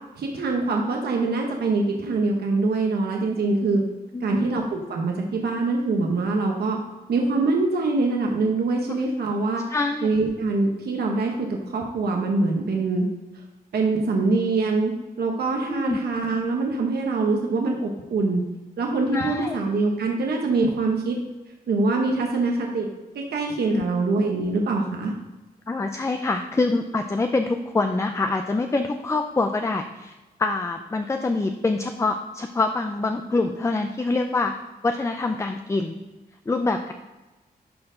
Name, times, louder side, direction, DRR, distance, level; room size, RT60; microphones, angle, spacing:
voice 1, 0.2-3.8 4.2-6.8 7.1-9.6 10.0-13.1 13.7-14.9 15.2-18.4 18.8-21.2 21.7-22.9 23.1-25.1, right 3 dB, 80° right, 1 dB, 1.0 m, -24 dB
voice 2, 4.1-4.5 9.7-10.1 15.7-16.0 19.1-19.6 23.7-23.8 25.7-30.1 30.4-34.5 34.8-36.0 36.5-36.9, left 3 dB, 15° left, 6 dB, 0.4 m, -25 dB
11.5 x 4.5 x 3.8 m, 1.1 s
wide cardioid pair, 105°, 16 cm